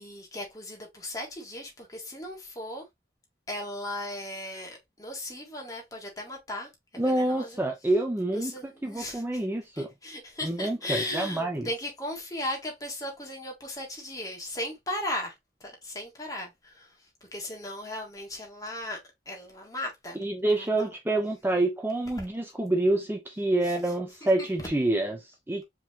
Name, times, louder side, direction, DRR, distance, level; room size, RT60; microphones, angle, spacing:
voice 1, 0.0-2.8 3.5-7.6 8.3-9.4 9.7-20.2 20.6-20.9 22.2-22.3 23.6-23.9 24.2-24.7, left 1 dB, 20° left, 1.8 m, -37 dB
voice 2, 7.0-8.5 8.8-9.9 10.4-11.7 20.2-25.6, right 2 dB, 10° right, 0.5 m, -27 dB
4.8 x 3.8 x 2.8 m
head